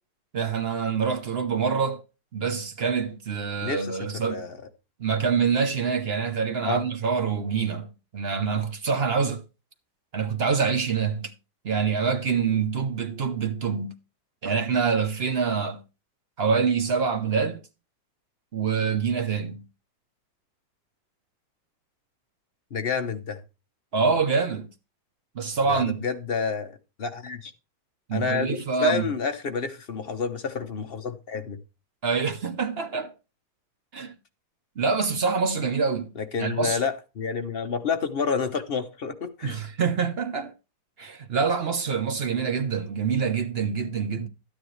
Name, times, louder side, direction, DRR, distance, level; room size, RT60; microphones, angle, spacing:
voice 1, 0.3-2.0 2.3-4.5 5.0-7.9 8.1-9.4 10.1-11.3 11.6-13.9 14.4-15.8 16.4-17.6 18.5-19.6 23.9-24.7 25.3-26.0 28.1-29.1 32.0-33.1 33.9-34.1 34.8-36.1 36.4-36.8 39.4-40.5 41.0-44.3, right 5 dB, 50° right, 0.8 m, -25 dB
voice 2, 3.6-4.6 6.6-6.8 22.7-23.4 25.7-26.7 27.0-27.5 28.1-31.6 36.2-39.6, left 5 dB, 45° left, 0.8 m, -29 dB
12.5 x 9.5 x 3.2 m
omnidirectional pair, 2.0 m